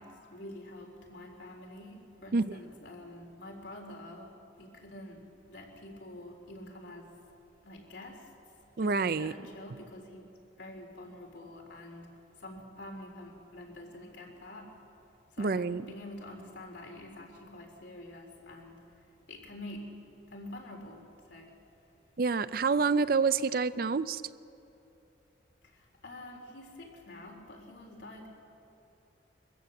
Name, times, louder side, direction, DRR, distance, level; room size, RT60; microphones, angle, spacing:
voice 1, 0.0-7.1 7.6-8.3 8.8-10.3 10.6-12.1 12.4-14.7 15.3-19.9 20.3-21.0 21.3-21.5 25.6-28.3, left 1 dB, 85° left, 1 dB, 3.9 m, -47 dB
voice 2, 8.8-9.3 15.4-16.0 22.2-24.2, right 4 dB, 55° right, 15 dB, 0.5 m, -28 dB
23.0 x 15.0 x 7.7 m, 2.8 s
head